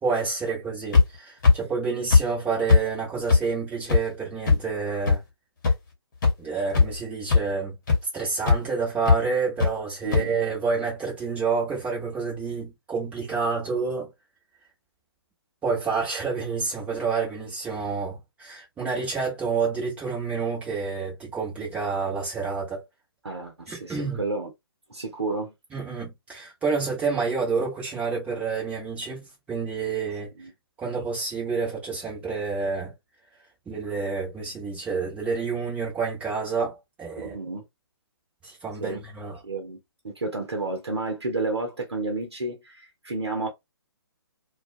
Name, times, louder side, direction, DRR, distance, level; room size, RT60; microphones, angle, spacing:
voice 1, 0.0-5.2 6.4-7.8 8.1-14.1 15.6-22.8 23.7-24.2 25.7-30.3 30.8-32.9 33.7-37.4 38.4-39.4, right 5 dB, 10° right, 0.9 m, -29 dB
sound 1, 0.9-1.0 1.4-1.5 2.1-2.2 2.7-2.8 3.3-3.4 3.9-4.0 4.5-4.6 5.1-5.2 5.6-5.7 6.2-6.3 6.7-7.0 7.3-7.4 7.9-8.0 8.5-8.6 9.1-9.2 9.6-9.7 10.1-10.2, left 4 dB, 45° left, 1.0 m, -17 dB
voice 2, 10.0-10.4 23.2-24.5 24.9-25.5 30.4-30.5 37.2-37.6 38.8-39.0 39.4-39.8 40.0-43.5, right 3 dB, 80° right, 0.8 m, -31 dB
2.3 x 2.2 x 2.5 m
figure-of-eight pair, 135°, 14 cm